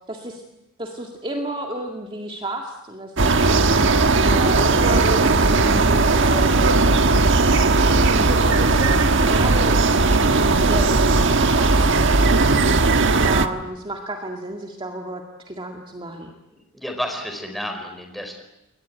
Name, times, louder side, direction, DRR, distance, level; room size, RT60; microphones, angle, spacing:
voice 1, 0.1-0.4 0.8-3.4 4.2-6.7 7.9-9.9 10.2-12.1 13.2-16.3, right 1 dB, 25° right, 2 dB, 2.1 m, -31 dB
sound 1, 3.2-13.5, right 3 dB, 60° right, 1.4 m, -17 dB
voice 2, 16.7-18.4, equal, ahead, 4 dB, 4.8 m, -30 dB
29.0 x 22.5 x 9.0 m, 0.95 s
head